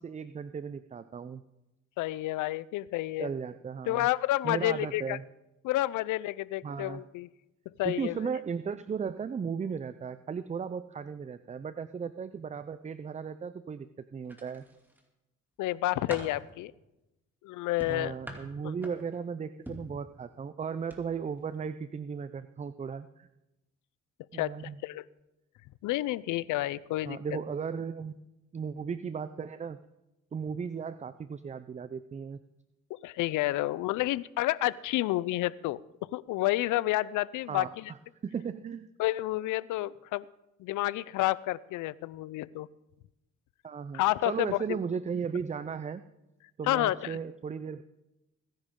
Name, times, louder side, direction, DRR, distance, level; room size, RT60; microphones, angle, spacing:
voice 1, 0.0-1.4 3.2-4.1 4.4-5.2 6.6-7.0 7.8-14.6 17.9-23.3 24.3-24.8 27.1-28.1 28.5-29.8 30.3-32.4 37.5-38.0 38.2-38.9 43.6-46.0 46.6-47.8, right 6 dB, 25° right, 13 dB, 0.4 m, -36 dB
voice 2, 2.0-3.3 3.9-5.2 5.6-7.3 7.8-8.2 15.6-16.7 17.4-18.2 18.6-18.7 24.3-24.5 24.8-25.0 25.8-27.2 33.0-35.8 36.1-37.9 39.0-40.2 40.6-42.7 43.9-44.8 46.6-47.2, left 16 dB, 85° left, 21 dB, 0.5 m, -30 dB
sound 1, 14.2-15.1 15.6-16.4 17.8-19.2 19.7-20.0 20.8-21.0 21.4-21.6, equal, 5° right, 2.6 m, -44 dB
21.5 x 10.5 x 3.7 m, 0.96 s
cardioid pair, 90°, 30 cm